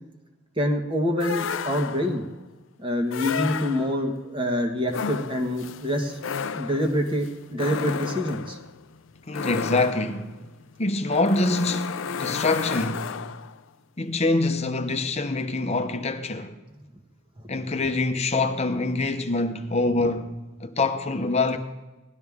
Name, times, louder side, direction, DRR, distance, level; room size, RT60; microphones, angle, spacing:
voice 1, 0.6-2.2 2.8-6.2 6.5-8.6, equal, 25° right, 1.4 m, -26 dB
sound 1, 1.2-2.3 3.1-4.1 4.9-13.6, left 6 dB, 65° left, 0.4 m, -33 dB
voice 2, 9.3-10.4 10.8-13.1 14.0-16.5 17.5-21.6, left 2 dB, 30° left, 0.8 m, -25 dB
17.5 x 12.0 x 3.6 m
head